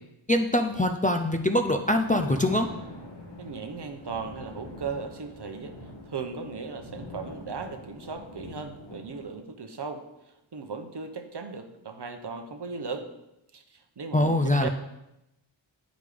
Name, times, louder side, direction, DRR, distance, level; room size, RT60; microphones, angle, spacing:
voice 1, 0.3-2.7 14.1-14.7, left 1 dB, 20° left, 4 dB, 0.4 m, -23 dB
Thunder, 1.6-9.4, left 1 dB, 65° left, 2.9 m, -44 dB
voice 2, 3.4-5.7 6.1-10.0 10.5-13.1 13.5-14.7, right 5 dB, 55° right, 6 dB, 0.8 m, -37 dB
9.2 x 5.1 x 3.4 m, 0.89 s
wide cardioid pair, 65°, 48 cm